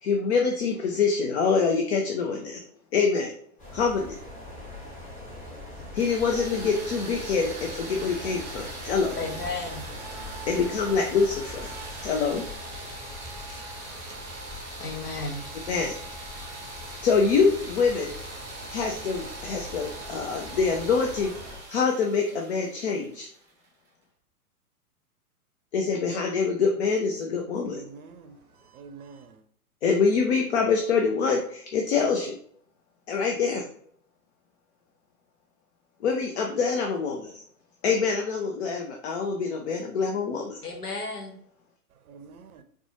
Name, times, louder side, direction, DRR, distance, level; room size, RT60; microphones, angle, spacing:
voice 1, 0.0-2.6 2.9-3.3 3.7-4.2 5.9-9.2 10.5-11.7 12.0-12.4 15.7-16.0 17.0-18.1 18.7-21.3 21.7-23.3 25.7-27.8 29.8-32.3 33.1-33.6 36.0-37.4 37.8-40.6, left 5 dB, 45° left, 0.5 m, -25 dB
sound 1, 3.6-21.6, left 2 dB, 15° left, 1.3 m, -42 dB
sound 2, 5.9-23.7, right 2 dB, 10° right, 0.7 m, -41 dB
voice 2, 9.2-9.8 13.5-13.6 14.1-14.2 14.8-15.4 40.6-41.4, left 3 dB, 85° left, 0.9 m, -34 dB
voice 3, 27.7-29.4 41.9-42.6, right 5 dB, 70° right, 0.6 m, -47 dB
4.2 x 2.2 x 2.8 m
figure-of-eight pair, 110°, 45 cm